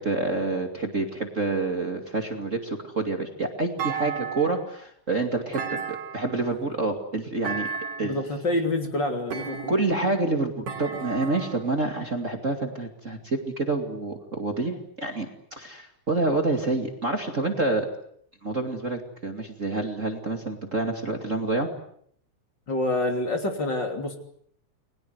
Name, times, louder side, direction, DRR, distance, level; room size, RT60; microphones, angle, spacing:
voice 1, 0.0-5.8 6.1-7.7 8.0-8.1 9.7-17.9 18.4-21.7, right 2 dB, 25° right, 4 dB, 2.5 m, -28 dB
Thump thud, 3.8-4.7 5.5-6.5 7.4-8.2 9.3-10.0 10.7-11.7, right 6 dB, 70° right, 4.8 m, -33 dB
voice 2, 8.0-9.7 22.7-24.2, left 1 dB, 35° left, 4 dB, 3.6 m, -27 dB
30.0 x 22.0 x 8.0 m, 0.66 s
omnidirectional pair, 3.3 m